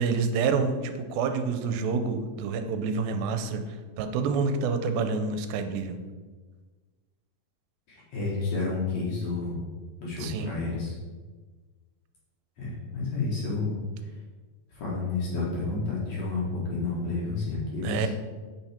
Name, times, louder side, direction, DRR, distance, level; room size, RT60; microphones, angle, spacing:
voice 1, 0.0-3.6 4.0-6.0 10.2-10.5 17.8-18.1, right 5 dB, 85° right, 8 dB, 2.4 m, -28 dB
voice 2, 7.9-9.6 10.0-10.9 12.6-13.7 14.7-18.1, left 3 dB, 55° left, -5 dB, 2.5 m, -30 dB
9.0 x 5.9 x 4.4 m, 1.4 s
omnidirectional pair, 4.2 m